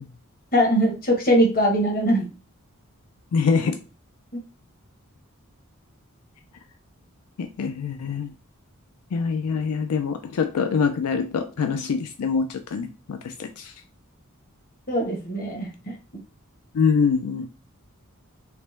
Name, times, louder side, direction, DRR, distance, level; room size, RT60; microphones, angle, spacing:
voice 1, 0.5-2.3 14.9-15.9, equal, 40° left, 1.2 m, -21 dB
voice 2, 3.3-3.8 7.4-8.3 9.1-13.7 16.7-17.5, left 5 dB, 80° left, 0.4 m, -24 dB
3.3 x 3.0 x 3.2 m
head